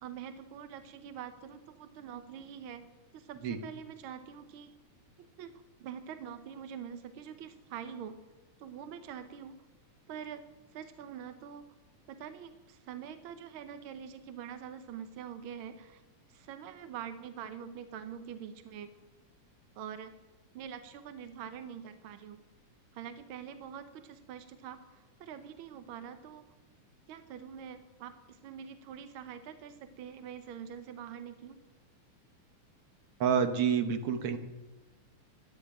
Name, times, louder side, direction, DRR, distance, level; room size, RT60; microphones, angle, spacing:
voice 1, 0.0-2.9 3.1-4.7 5.2-8.2 8.6-9.6 10.1-10.4 10.7-11.7 12.1-16.0 16.3-18.9 19.8-20.1 20.5-22.4 22.9-26.5 27.1-31.6, right 8 dB, 80° right, 10 dB, 1.1 m, -45 dB
voice 2, 33.2-34.4, right 7 dB, 60° right, 8 dB, 1.6 m, -28 dB
13.5 x 9.5 x 9.0 m, 1.1 s
omnidirectional pair, 3.5 m